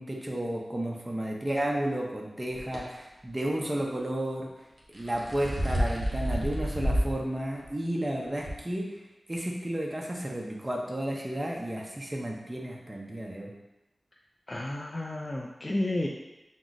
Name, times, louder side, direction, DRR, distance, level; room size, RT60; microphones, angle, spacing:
voice 1, 0.0-4.5 4.9-9.0 9.3-13.5, right 1 dB, 20° right, 0 dB, 0.6 m, -32 dB
sound 1, 2.5-2.8 4.8-7.2 7.6-7.7 8.5-8.6, equal, 50° right, 1.0 m, -29 dB
voice 2, 14.5-16.1, left 1 dB, 25° left, -2 dB, 0.4 m, -31 dB
6.0 x 2.0 x 3.9 m, 0.98 s
wide cardioid pair, 100°, 0 cm